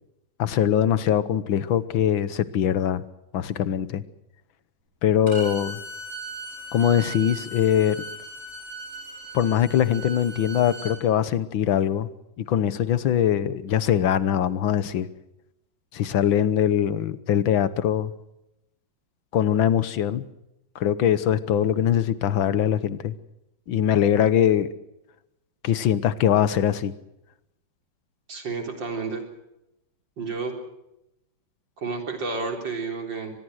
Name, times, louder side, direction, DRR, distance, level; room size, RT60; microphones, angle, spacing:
voice 1, 0.4-3.0 3.3-4.0 5.0-5.8 6.7-8.0 9.3-12.1 12.4-15.1 15.9-18.1 19.3-20.3 20.8-23.1 23.7-24.7 25.6-26.9, left 9 dB, 80° left, 15 dB, 1.9 m, -22 dB
Bowed string instrument, 5.3-11.0, right 2 dB, 40° right, 6.3 m, -38 dB
voice 2, 28.3-29.2 30.2-30.5 31.8-33.3, right 4 dB, 70° right, 3 dB, 4.5 m, -30 dB
24.0 x 21.0 x 6.4 m, 0.88 s
omnidirectional pair, 2.1 m